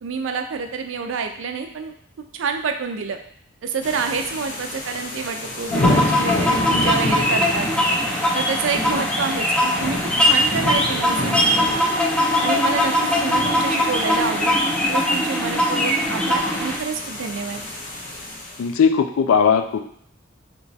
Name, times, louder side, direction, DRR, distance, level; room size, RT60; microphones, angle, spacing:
voice 1, 0.0-1.9 2.3-3.2 3.6-7.7 8.3-11.7 12.4-12.9 13.2-14.6 14.9-17.6, right 5 dB, 65° right, 6 dB, 0.4 m, -28 dB
Rain and Thunders, 3.8-18.6, left 1 dB, 40° left, 0.7 m, -29 dB
sound 1, 5.7-16.8, left 1 dB, 5° left, 0.4 m, -21 dB
voice 2, 18.6-19.8, left 6 dB, 85° left, 8 dB, 0.3 m, -18 dB
2.9 x 2.3 x 4.0 m, 0.65 s
head